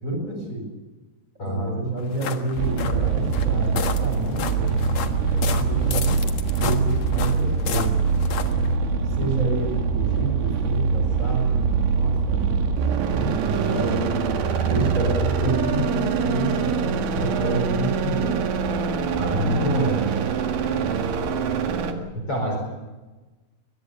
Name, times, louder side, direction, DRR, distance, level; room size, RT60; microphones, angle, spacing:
voice 1, 0.0-0.6 1.4-6.1 6.6-7.9 9.1-12.5 13.1-18.3 19.3-20.0, right 1 dB, 15° right, 2 dB, 6.9 m, -28 dB
voice 2, 1.4-1.8 19.2-19.5 22.1-22.6, right 1 dB, 30° left, 1 dB, 4.7 m, -28 dB
sound 1, 2.0-8.8, left 7 dB, 70° left, 1.6 m, -33 dB
sound 2, 2.6-21.9, right 5 dB, 80° right, 4.3 m, -24 dB
23.0 x 21.5 x 7.0 m, 1.2 s
omnidirectional pair, 5.4 m